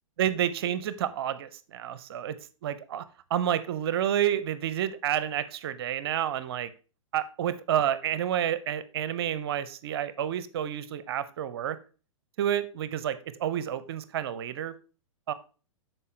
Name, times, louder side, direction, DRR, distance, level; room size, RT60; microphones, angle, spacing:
voice 1, 0.2-2.4 2.6-3.0 3.3-6.7 7.1-11.8 12.4-14.7 15.3-15.4, right 10 dB, 50° right, 0.7 m, -29 dB
12.0 x 4.5 x 3.2 m
figure-of-eight pair, 110°, 17 cm